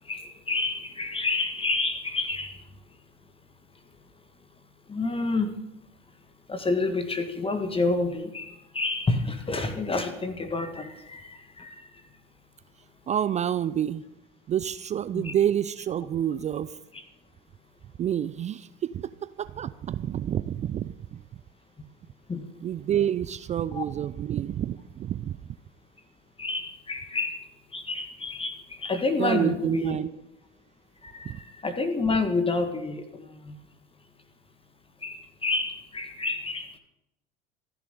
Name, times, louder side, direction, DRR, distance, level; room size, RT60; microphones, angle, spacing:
voice 1, 0.0-2.7 4.9-5.5 6.5-12.1 15.1-15.3 16.9-17.0 22.3-22.4 23.7-23.8 26.4-30.0 31.0-33.6 35.0-36.8, left 3 dB, 20° left, 8 dB, 1.6 m, -29 dB
voice 2, 13.1-14.0 14.5-16.8 18.0-21.2 22.6-25.4 29.2-30.1 31.2-31.4, right 10 dB, 25° right, 16 dB, 0.4 m, -28 dB
26.5 x 10.5 x 3.7 m, 0.90 s
figure-of-eight pair, 70°, 30 cm